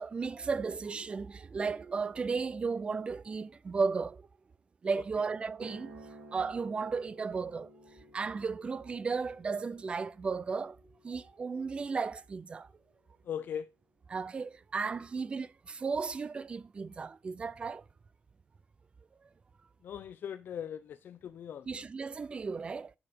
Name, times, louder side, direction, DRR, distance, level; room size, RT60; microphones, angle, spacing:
voice 1, 0.0-4.3 4.8-6.1 6.3-7.7 8.1-10.8 11.0-12.7 14.1-17.8 21.7-22.9, right 4 dB, 25° right, 0.4 m, -34 dB
sound 1, 5.5-13.6, right 2 dB, 65° right, 2.3 m, -54 dB
voice 2, 13.3-13.7 19.8-21.7, left 8 dB, 60° left, 0.4 m, -39 dB
7.0 x 6.9 x 5.0 m
wide cardioid pair, 165°, 4 cm